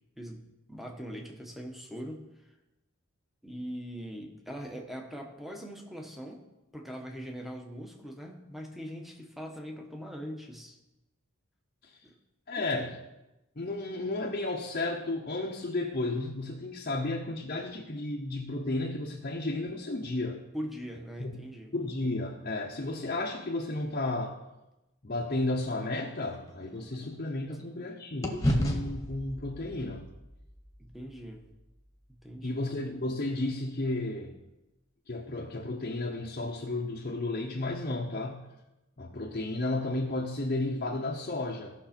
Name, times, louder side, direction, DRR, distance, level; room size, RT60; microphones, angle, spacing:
voice 1, 0.2-2.3 3.4-6.4 6.7-10.8 12.0-12.1 12.5-12.9 20.5-21.7 30.8-31.4 32.2-32.6, equal, ahead, 2 dB, 1.2 m, -41 dB
voice 2, 12.5-13.0 13.6-20.4 21.2-21.4 21.7-24.4 25.0-30.1 32.4-34.3 35.1-38.5 39.0-41.7, left 2 dB, 45° left, -1 dB, 0.8 m, -33 dB
sound 1, 25.5-27.8 28.2-32.5, equal, 15° left, 1.3 m, -35 dB
16.5 x 6.2 x 4.4 m, 1.0 s
head